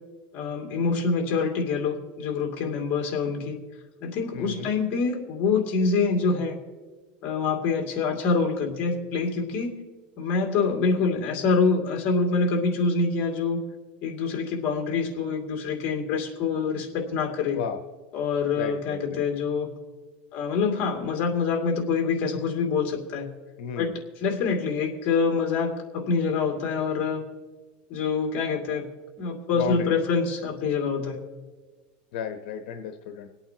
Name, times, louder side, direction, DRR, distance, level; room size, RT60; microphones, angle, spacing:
voice 1, 0.3-3.6 4.0-6.6 7.2-9.8 10.2-13.6 14.0-17.6 18.1-19.7 20.3-23.3 23.8-27.2 27.9-28.8 29.2-31.2, left 4 dB, 45° left, 1 dB, 2.4 m, -26 dB
voice 2, 4.3-4.7 17.5-17.8 18.5-19.2 23.6-23.9 29.6-30.0 32.1-33.3, left 7 dB, 80° left, 6 dB, 1.0 m, -33 dB
26.0 x 8.8 x 2.9 m, 1.3 s
supercardioid pair, 155°, 5 cm